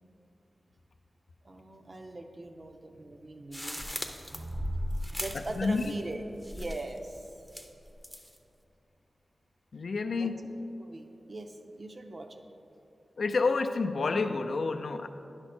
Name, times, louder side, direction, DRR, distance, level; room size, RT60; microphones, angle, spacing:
voice 1, 1.4-6.2 6.5-7.3 10.2-10.3 10.8-12.4, right 2 dB, 40° right, 5 dB, 0.6 m, -40 dB
sound 1, 3.5-6.1 6.4-7.0 7.5-8.4, left 1 dB, ahead, 0.6 m, -38 dB
voice 2, 9.7-10.5 13.2-15.1, left 4 dB, 70° left, 7 dB, 0.4 m, -29 dB
10.5 x 5.8 x 4.3 m, 2.8 s
wide cardioid pair, 100°, 0 cm